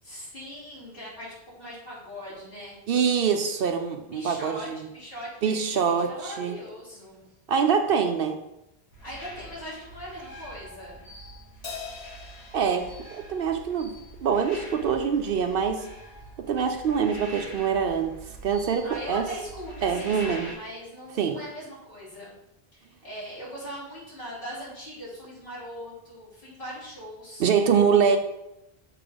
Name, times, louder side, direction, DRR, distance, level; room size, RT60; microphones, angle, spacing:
voice 1, 0.0-2.8 4.1-7.2 9.0-11.0 18.8-22.3 22.7-27.5, equal, 60° left, -8 dB, 3.1 m, -40 dB
voice 2, 2.9-4.8 5.4-6.6 7.5-8.4 12.5-13.9 14.2-15.9 16.5-18.1 18.4-19.3 19.8-20.5 21.2-21.4 27.4-28.2, right 6 dB, 65° right, 6 dB, 0.7 m, -24 dB
sound 1, 8.9-20.5, right 1 dB, 80° left, 1.7 m, -45 dB
Crash cymbal, 11.6-14.3, left 5 dB, 40° left, 0.8 m, -43 dB
6.7 x 3.7 x 5.1 m, 0.88 s
omnidirectional pair, 1.1 m